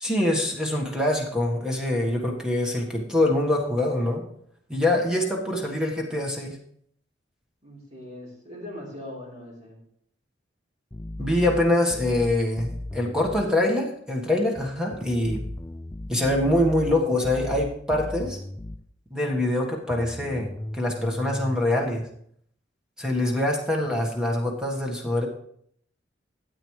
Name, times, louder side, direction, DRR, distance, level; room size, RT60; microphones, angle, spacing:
voice 1, 0.0-4.2 4.7-6.6 11.2-15.4 16.1-18.4 19.1-22.0 23.0-25.3, left 1 dB, 5° right, 0 dB, 1.4 m, -24 dB
voice 2, 7.6-9.8, left 1 dB, 35° right, -5 dB, 3.7 m, -40 dB
sound 1, 10.9-13.5 15.2-18.9 19.9-21.6, left 1 dB, 15° left, 0.4 m, -36 dB
13.0 x 8.5 x 3.2 m, 0.67 s
head